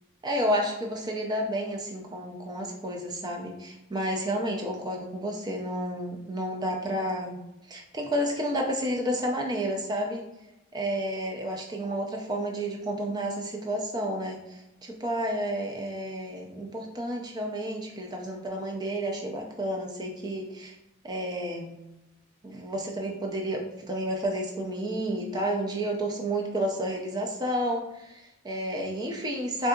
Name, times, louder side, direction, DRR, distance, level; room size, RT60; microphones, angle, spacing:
voice 1, 0.2-10.3 10.7-20.8 21.0-21.8 22.4-29.7, equal, 20° right, 2 dB, 0.4 m, -31 dB
3.6 x 2.6 x 2.3 m, 0.92 s
head